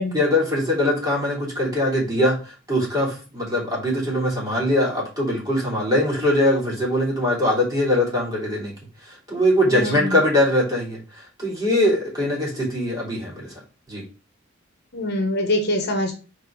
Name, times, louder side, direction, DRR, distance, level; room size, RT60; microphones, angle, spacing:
voice 1, 0.1-8.7 9.0-13.5 13.9-14.0, left 1 dB, 20° right, -4 dB, 3.2 m, -22 dB
voice 2, 9.7-10.2 14.9-16.1, left 1 dB, 55° left, 3 dB, 1.4 m, -24 dB
4.9 x 4.5 x 5.0 m, 0.34 s
head